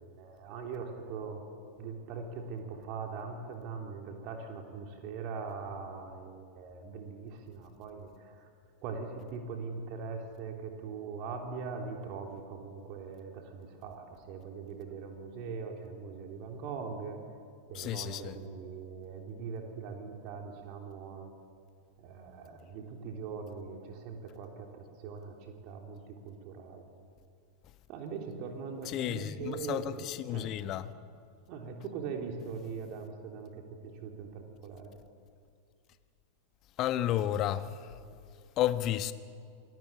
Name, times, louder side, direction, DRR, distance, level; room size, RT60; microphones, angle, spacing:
voice 1, 0.2-1.4 1.8-8.5 8.8-17.2 17.7-21.3 22.0-26.9 27.9-30.0 30.3-30.5 31.5-33.6 34.0-34.9, right 5 dB, 40° right, 3.6 m, -41 dB
voice 2, 17.7-18.4 28.9-30.9 36.8-37.9 38.6-39.1, left 12 dB, 35° left, 1.2 m, -32 dB
27.5 x 19.5 x 8.8 m
figure-of-eight pair, 90°, 0 cm